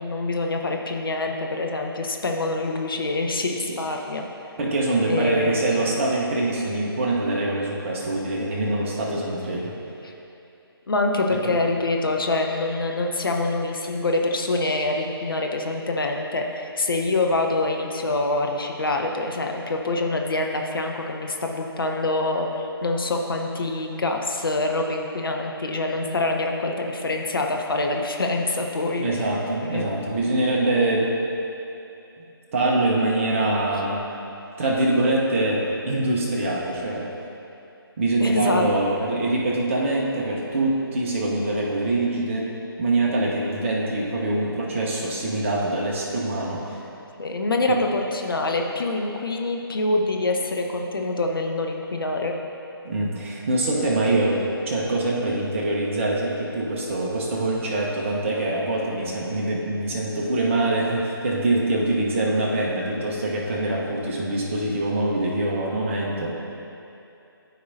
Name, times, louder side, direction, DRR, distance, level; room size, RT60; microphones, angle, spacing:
voice 1, 0.0-4.3 5.1-5.6 10.9-29.2 29.7-29.9 38.2-38.7 47.2-52.3, left 2 dB, 60° left, 2 dB, 0.8 m, -25 dB
voice 2, 4.6-9.7 29.0-31.2 32.5-34.0 34.6-37.1 38.0-42.5 42.8-46.8 47.7-47.8 52.8-54.4 54.7-66.3, right 2 dB, 30° right, -3 dB, 1.0 m, -24 dB
13.0 x 4.7 x 2.7 m, 2.8 s
figure-of-eight pair, 145°, 13 cm